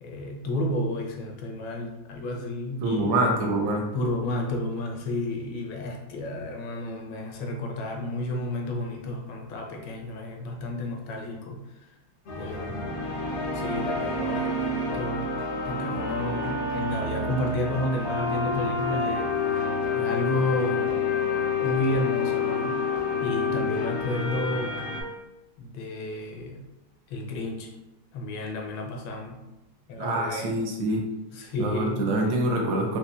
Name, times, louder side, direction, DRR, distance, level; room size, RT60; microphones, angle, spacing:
voice 1, 0.0-3.2 3.9-11.9 12.4-13.0 13.5-15.3 15.6-21.0 21.6-22.9 23.2-24.9 25.6-26.7 27.1-27.7 28.1-29.5 29.9-30.6 31.3-32.5, left 1 dB, 80° left, 2 dB, 1.4 m, -32 dB
voice 2, 2.8-3.8 30.0-31.0 31.6-33.0, right 1 dB, 80° right, 1 dB, 1.4 m, -25 dB
sound 1, 12.3-25.0, left 4 dB, 60° left, 0.7 m, -28 dB
4.1 x 2.8 x 2.2 m, 0.96 s
omnidirectional pair, 2.2 m